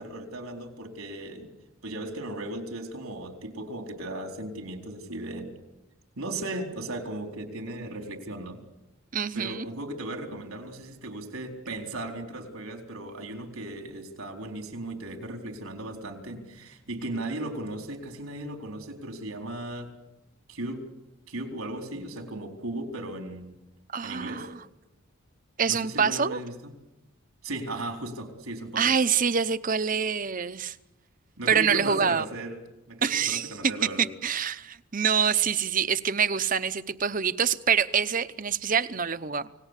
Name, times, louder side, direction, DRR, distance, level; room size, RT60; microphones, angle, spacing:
voice 1, 0.0-1.5 1.8-5.5 6.2-8.6 9.3-19.9 20.5-20.8 21.3-23.6 24.0-24.5 25.7-26.7 27.4-28.9 31.4-32.6 32.9-34.1, right 1 dB, 90° right, 4 dB, 4.2 m, -36 dB
voice 2, 9.1-9.7 23.9-24.6 25.6-26.4 28.8-30.8 31.5-32.2 33.0-33.5 34.0-39.5, right 7 dB, 40° right, 13 dB, 0.8 m, -26 dB
29.0 x 18.5 x 8.3 m, 0.96 s
head